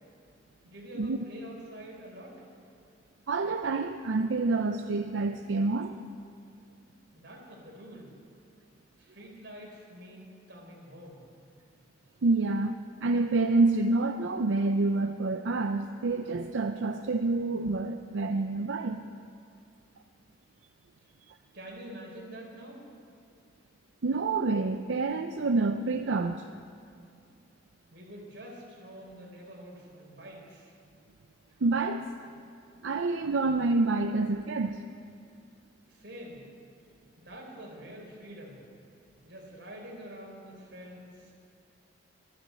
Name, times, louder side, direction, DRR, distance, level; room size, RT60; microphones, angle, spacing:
voice 1, 0.6-2.4 7.1-8.1 9.0-11.2 21.5-22.8 27.9-30.7 35.9-36.4 37.2-38.6 39.2-41.3, equal, 65° right, -1 dB, 4.1 m, -46 dB
voice 2, 3.3-6.0 12.2-19.0 24.0-26.5 31.6-32.0 32.8-34.8, right 3 dB, 90° right, 6 dB, 0.6 m, -28 dB
13.0 x 12.0 x 8.3 m, 2.4 s
head